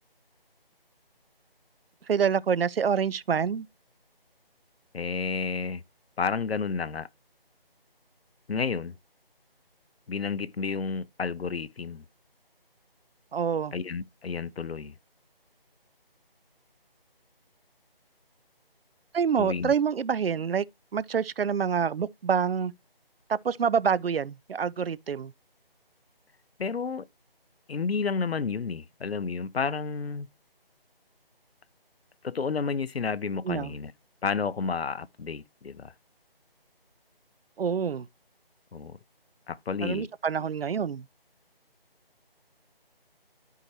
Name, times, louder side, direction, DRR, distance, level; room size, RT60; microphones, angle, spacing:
voice 1, 2.1-3.7 13.3-13.7 19.1-20.6 20.9-22.7 23.3-25.3 33.5-33.7 37.6-38.1 39.8-41.1, right 7 dB, 70° right, 0.5 m, -27 dB
voice 2, 4.9-5.8 6.2-7.1 8.5-8.9 10.1-12.0 13.7-14.9 19.4-19.7 26.6-27.0 27.7-30.3 32.2-33.9 34.2-35.9 38.7-39.0 39.5-40.1, left 5 dB, 90° left, 0.7 m, -31 dB
12.0 x 4.7 x 2.9 m
figure-of-eight pair, 165°, 30 cm